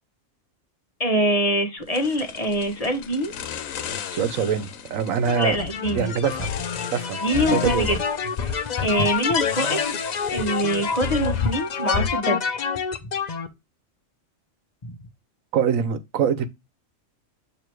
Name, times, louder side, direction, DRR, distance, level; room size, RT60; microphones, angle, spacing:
voice 1, 1.0-3.3 5.3-6.1 7.2-8.0 8.4-9.8 10.3-12.6 14.8-14.9, equal, 30° left, 1.1 m, -24 dB
sound 1, 1.9-12.0, left 8 dB, 90° left, 1.1 m, -37 dB
voice 2, 4.1-6.5 6.9-7.2 7.5-8.0 9.0-9.2 15.5-16.5, right 7 dB, 90° right, 1.2 m, -24 dB
sound 2, 5.3-13.5, left 6 dB, 45° left, 0.6 m, -27 dB
6.9 x 3.0 x 4.5 m
omnidirectional pair, 1.3 m